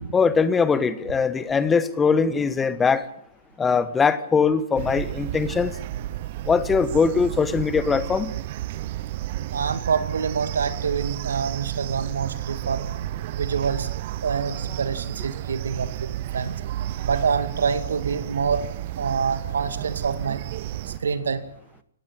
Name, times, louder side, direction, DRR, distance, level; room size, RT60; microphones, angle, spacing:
voice 1, 0.1-3.1 3.6-5.7 6.5-8.3, left 5 dB, 10° left, 15 dB, 1.3 m, -21 dB
sound 1, 4.8-21.0, right 14 dB, 45° right, 0.7 m, -32 dB
voice 2, 9.5-12.9 13.3-13.9 14.2-16.5 17.0-18.6 19.0-20.4 20.9-21.5, right 6 dB, 80° right, 11 dB, 2.3 m, -26 dB
18.5 x 16.0 x 9.3 m, 0.69 s
hypercardioid pair, 135°, 0 cm